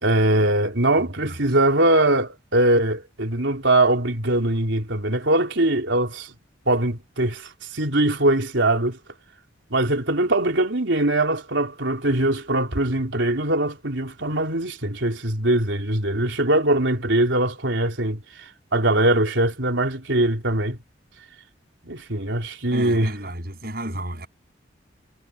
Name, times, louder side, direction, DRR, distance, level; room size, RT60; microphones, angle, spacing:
voice 1, 0.0-6.3 6.7-9.0 9.7-18.2 18.7-20.8 21.8-23.1, right 1 dB, 75° right, 3.7 m, -21 dB
voice 2, 22.7-24.3, right 1 dB, 50° right, 7.8 m, -32 dB
head